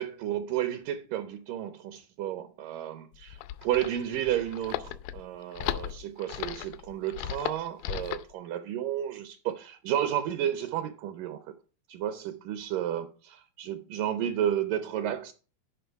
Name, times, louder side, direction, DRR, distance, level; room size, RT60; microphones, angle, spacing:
voice 1, 0.0-3.3 3.6-11.5 11.9-15.3, right 11 dB, 75° right, 2.1 m, -32 dB
sound 1, 3.1-8.3, left 13 dB, 85° left, 2.3 m, -36 dB
10.0 x 5.3 x 4.6 m
omnidirectional pair, 4.2 m